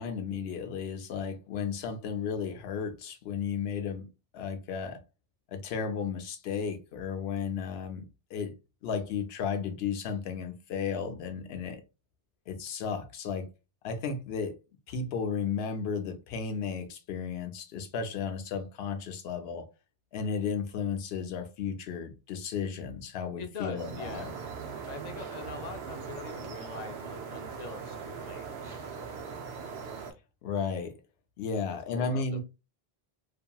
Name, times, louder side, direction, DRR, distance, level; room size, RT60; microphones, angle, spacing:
voice 1, 0.0-4.0 4.3-5.0 5.5-8.5 8.8-11.8 12.5-13.5 13.8-14.6 14.9-19.7 20.1-24.3 30.4-31.0 31.4-32.4, left 6 dB, 80° left, 0.8 m, -34 dB
voice 2, 23.4-24.3 24.9-29.2 31.9-32.4, left 4 dB, 50° left, 0.6 m, -43 dB
sound 1, 23.8-30.1, right 6 dB, 75° right, 0.8 m, -40 dB
2.8 x 2.5 x 2.2 m
omnidirectional pair, 1.0 m